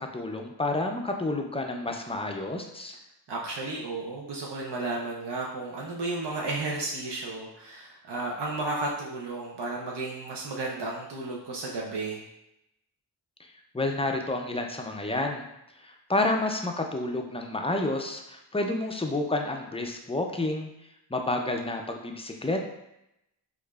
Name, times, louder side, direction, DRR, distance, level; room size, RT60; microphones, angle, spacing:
voice 1, 0.0-3.0 13.7-15.5 15.8-20.7 21.1-22.6, left 2 dB, 15° left, 3 dB, 0.4 m, -30 dB
voice 2, 3.3-12.2, right 2 dB, 75° right, -3 dB, 0.6 m, -33 dB
4.6 x 2.4 x 2.3 m, 0.84 s
wide cardioid pair, 65°, 41 cm